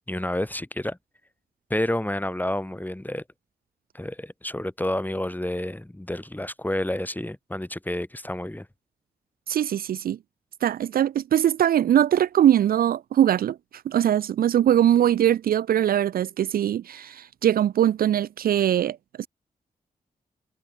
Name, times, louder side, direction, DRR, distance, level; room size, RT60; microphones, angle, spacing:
voice 1, 0.1-1.0 1.7-3.2 3.9-8.7, left 1 dB, 10° left, 4.1 m, -29 dB
voice 2, 9.5-10.2 10.6-13.6 13.9-19.3, right 10 dB, 70° right, 0.4 m, -21 dB
cardioid pair, 50°, 16 cm